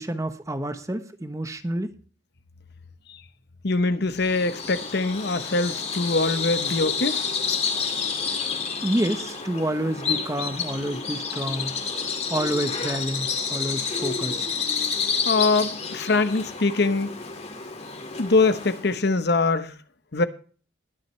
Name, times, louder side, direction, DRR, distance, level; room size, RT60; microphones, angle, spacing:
voice 1, 0.0-1.9 8.8-11.7 12.3-14.4, right 1 dB, 15° right, 0.9 m, -28 dB
voice 2, 3.6-7.2 15.2-17.1 18.2-19.7 20.1-20.2, left 3 dB, 55° left, 0.9 m, -23 dB
Bird vocalization bird call bird song, 4.2-19.0, left 5 dB, 35° left, 2.1 m, -29 dB
21.0 x 7.6 x 3.2 m
head